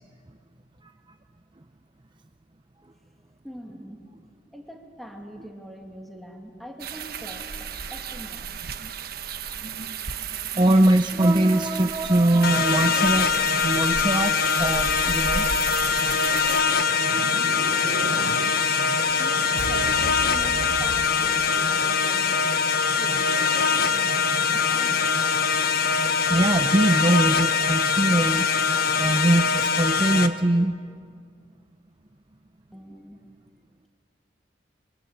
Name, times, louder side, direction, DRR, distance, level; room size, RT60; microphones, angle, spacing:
voice 1, 3.4-4.0 4.5-8.6 19.2-22.6 22.9-25.1 32.7-33.2, equal, ahead, 2 dB, 2.6 m, -43 dB
sound 1, 6.8-16.6, right 7 dB, 55° right, 1.2 m, -34 dB
voice 2, 9.6-10.1 10.5-15.5 16.7-17.6 26.3-28.5 29.0-30.8, right 1 dB, 25° right, 7 dB, 0.7 m, -22 dB
sound 2, 12.4-30.3, left 5 dB, 55° left, 1.3 m, -23 dB
sound 3, 16.7-22.1, right 3 dB, 75° right, 0.9 m, -36 dB
25.5 x 24.0 x 8.3 m, 2.2 s
head